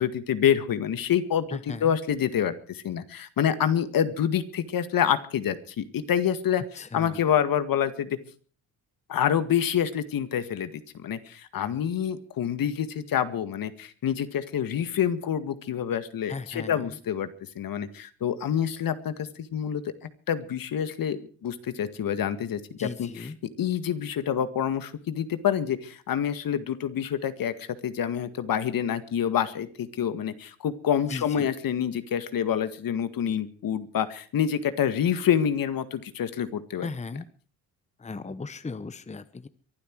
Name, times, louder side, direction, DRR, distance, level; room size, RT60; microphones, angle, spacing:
voice 1, 0.0-8.2 9.1-17.3 17.6-23.1 23.6-36.9, left 9 dB, 55° left, 11 dB, 1.9 m, -27 dB
voice 2, 1.5-2.0 6.6-7.3 16.3-17.0 22.8-23.4 31.1-31.5 36.8-37.3 38.0-39.5, left 4 dB, 15° left, 14 dB, 1.0 m, -37 dB
23.5 x 12.0 x 4.7 m, 0.42 s
supercardioid pair, 70°, 40 cm